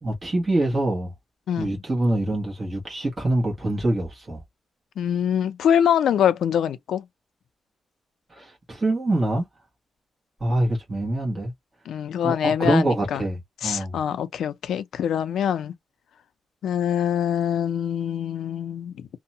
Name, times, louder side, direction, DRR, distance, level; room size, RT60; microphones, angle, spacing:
voice 1, 0.0-1.1 1.6-4.4 8.3-9.5 10.4-11.5 12.2-14.0, right 1 dB, 20° right, 1.1 m, -25 dB
voice 2, 5.0-7.1 11.9-13.2 13.6-15.7 16.6-19.1, left 9 dB, 85° left, 0.4 m, -24 dB
2.7 x 2.1 x 2.7 m
wide cardioid pair, 180°, 0 cm